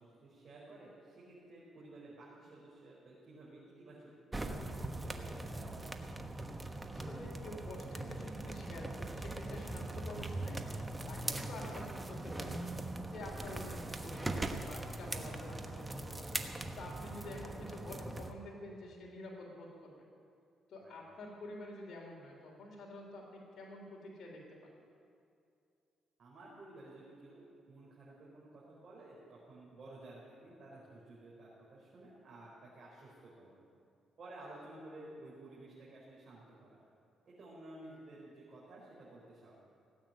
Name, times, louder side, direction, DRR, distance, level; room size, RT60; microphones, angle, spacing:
voice 1, 0.0-6.0 13.7-13.9 20.8-21.3 26.2-33.5 34.2-36.8 37.3-39.5, right 2 dB, 50° right, -7 dB, 4.8 m, -53 dB
sound 1, 4.3-18.3, right 2 dB, 15° right, 1.2 m, -41 dB
voice 2, 6.9-10.6 11.1-12.6 13.0-16.3 16.7-20.1 20.7-24.8, left 1 dB, 55° left, -2 dB, 3.6 m, -48 dB
17.0 x 8.8 x 9.2 m, 2.5 s
cardioid pair, 90°, 0 cm